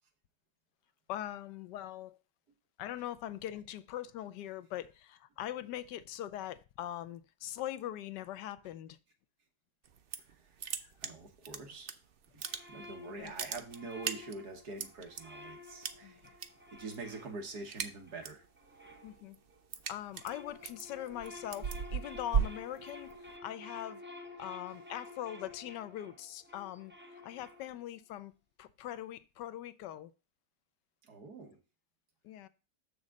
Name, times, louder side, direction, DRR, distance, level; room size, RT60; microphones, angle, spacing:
voice 1, 1.1-2.2 2.8-9.0 10.8-10.9 13.2-13.3 16.0-16.3 19.0-19.4 19.9-23.1 23.4-24.0 24.4-28.3 28.6-30.1 32.2-32.5, left 12 dB, 80° left, 1.2 m, -42 dB
sound 1, 9.9-10.3 10.6-11.9 12.2-12.9 13.2-15.2 15.8-16.5 16.8-17.1 17.4-18.5 18.9-23.4, right 7 dB, 90° right, 0.5 m, -36 dB
voice 2, 11.0-12.0 12.3-12.4 12.7-16.2 16.7-18.5 31.0-31.6, right 3 dB, 65° right, 2.0 m, -45 dB
sound 2, 12.4-19.7 20.0-28.0, left 2 dB, 10° right, 0.6 m, -51 dB
7.2 x 6.4 x 3.8 m
omnidirectional pair, 1.8 m